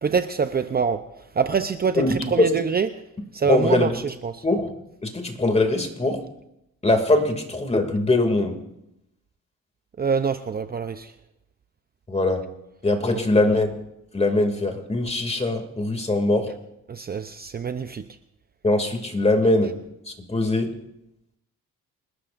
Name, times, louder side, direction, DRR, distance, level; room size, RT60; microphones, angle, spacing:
voice 1, 0.0-2.9 3.3-4.4 10.0-11.1 13.1-13.2 16.9-18.0, right 6 dB, 30° right, 9 dB, 0.7 m, -25 dB
voice 2, 1.9-2.5 3.5-3.9 4.4-4.7 5.0-6.2 6.8-8.6 12.1-12.4 12.8-13.7 14.1-16.5 18.6-19.7 20.1-20.7, left 2 dB, 20° left, 4 dB, 2.6 m, -22 dB
28.5 x 12.5 x 2.6 m, 0.86 s
cardioid pair, 90°, 30 cm